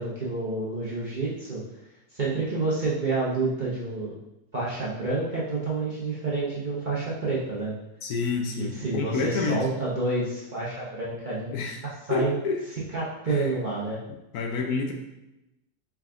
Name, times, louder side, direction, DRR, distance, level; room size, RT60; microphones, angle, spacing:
voice 1, 0.0-1.6 2.1-4.2 4.5-7.7 8.6-11.6 11.8-12.3 12.9-14.0, right 3 dB, 40° right, -7 dB, 0.8 m, -29 dB
voice 2, 8.0-9.6 11.5-11.8 12.1-12.6 13.3-13.5 14.3-14.9, left 4 dB, 75° left, 2 dB, 1.1 m, -28 dB
4.7 x 3.5 x 2.4 m, 0.89 s
omnidirectional pair, 1.7 m